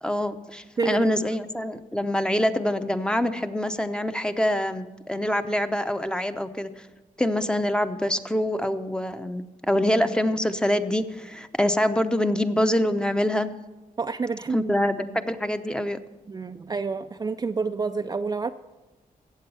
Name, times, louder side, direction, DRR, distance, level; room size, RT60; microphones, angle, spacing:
voice 1, 0.0-6.9 7.2-13.5 14.5-16.0, left 1 dB, 5° left, 9 dB, 0.7 m, -25 dB
voice 2, 14.0-14.7 16.3-18.5, right 4 dB, 25° right, 7 dB, 0.4 m, -28 dB
14.5 x 8.4 x 5.6 m, 1.2 s
cardioid pair, 100°, 15 cm